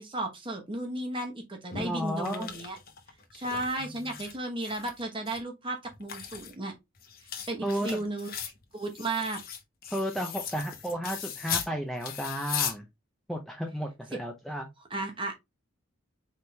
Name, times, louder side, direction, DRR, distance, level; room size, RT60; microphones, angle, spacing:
voice 1, 0.0-2.8 3.3-6.7 7.5-8.3 8.7-9.4 14.1-14.2 14.9-15.3, right 2 dB, 25° right, 1.1 m, -34 dB
sound 1, 1.7-4.4 4.6-5.4 5.8-11.7 12.0-12.7, left 8 dB, 45° left, 0.9 m, -38 dB
voice 2, 1.8-2.5 7.6-8.1 9.9-12.9 13.3-14.7, equal, ahead, 0.5 m, -33 dB
4.4 x 3.5 x 3.2 m
head